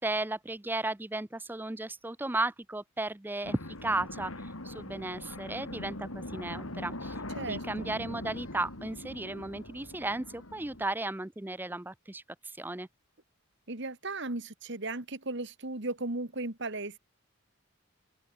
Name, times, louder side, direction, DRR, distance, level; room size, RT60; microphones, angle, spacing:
voice 1, 0.0-12.2 12.6-12.9, right 2 dB, 10° right, 0.5 m, -35 dB
sound 1, 3.4-10.9, left 1 dB, 80° left, 4.6 m, -42 dB
voice 2, 7.4-7.9 13.7-17.0, right 2 dB, 55° right, 1.9 m, -36 dB
open air
head